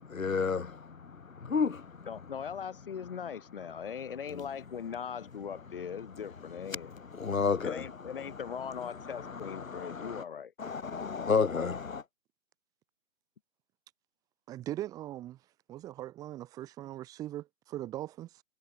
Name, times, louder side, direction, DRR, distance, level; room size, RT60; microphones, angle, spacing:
voice 1, 0.0-2.1 4.3-4.4 7.1-7.9 9.2-10.2 10.6-12.0, left 5 dB, 70° left, 3.0 m, -31 dB
voice 2, 2.1-6.9 7.6-10.5, left 7 dB, 40° left, 5.1 m, -40 dB
voice 3, 14.5-15.4 15.7-18.4, right 14 dB, 10° right, 3.3 m, -40 dB
hypercardioid pair, 165°, 42 cm